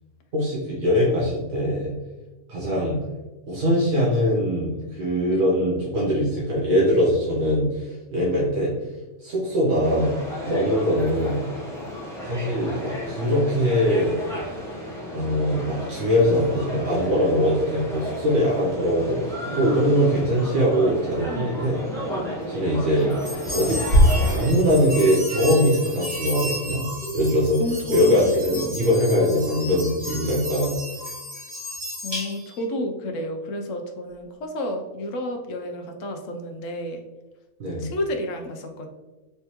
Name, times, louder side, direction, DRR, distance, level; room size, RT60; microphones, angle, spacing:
voice 1, 0.3-1.9 2.5-3.0 3.5-8.7 9.2-10.1 10.4-11.4 12.2-14.2 15.1-21.8 22.5-23.1 23.5-23.8 24.2-26.8 27.1-27.6 27.9-30.8 37.6-37.9, equal, 75° right, -6 dB, 1.4 m, -22 dB
sound 1, 9.8-24.5, equal, 5° left, 0.7 m, -33 dB
sound 2, 23.1-32.6, equal, 35° right, 1.6 m, -27 dB
voice 2, 27.6-28.8 32.0-37.0 37.8-38.9, left 1 dB, 70° left, 4 dB, 0.9 m, -31 dB
3.4 x 3.3 x 2.9 m, 1.1 s
omnidirectional pair, 1.5 m